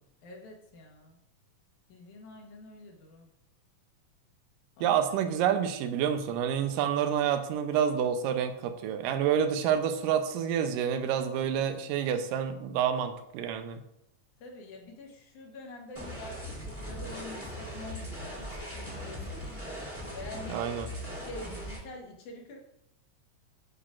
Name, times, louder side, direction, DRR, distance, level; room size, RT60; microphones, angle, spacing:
voice 1, 0.2-1.2 1.9-3.3 4.8-5.0 14.4-19.5 20.1-20.7 21.2-22.6, left 2 dB, 70° left, 1 dB, 2.5 m, -46 dB
voice 2, 4.8-13.8 20.5-20.9, right 8 dB, 85° right, 8 dB, 2.3 m, -28 dB
sound 1, 15.9-21.8, equal, 5° right, 1.1 m, -39 dB
9.4 x 5.7 x 2.4 m, 0.79 s
omnidirectional pair, 3.8 m